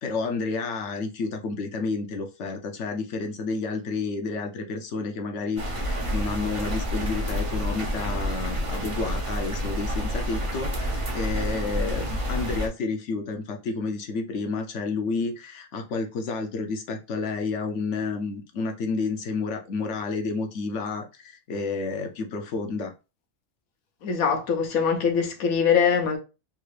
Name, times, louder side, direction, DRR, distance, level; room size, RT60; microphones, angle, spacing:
voice 1, 0.0-22.9, left 4 dB, 65° left, 0.9 m, -30 dB
sound 1, 5.6-12.7, equal, 35° right, 0.5 m, -29 dB
voice 2, 24.0-26.2, left 6 dB, 80° left, 1.2 m, -22 dB
3.6 x 2.4 x 3.1 m
omnidirectional pair, 1.5 m